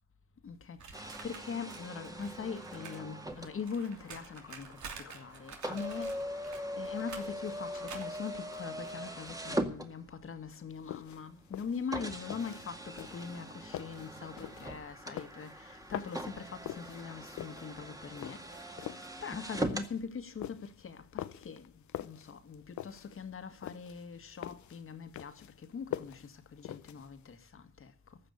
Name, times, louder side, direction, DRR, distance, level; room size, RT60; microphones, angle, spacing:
voice 1, 0.4-19.0 19.2-28.2, left 6 dB, 45° left, 1.8 m, -42 dB
sound 1, 0.8-3.0 3.3-9.4, right 6 dB, 70° right, 2.9 m, -50 dB
sound 2, 0.9-10.4 11.1-11.2 11.9-19.9, equal, 10° right, 2.0 m, -41 dB
sound 3, 10.7-27.3, left 12 dB, 70° left, 0.9 m, -45 dB
15.0 x 6.0 x 9.7 m
cardioid pair, 90°, 30 cm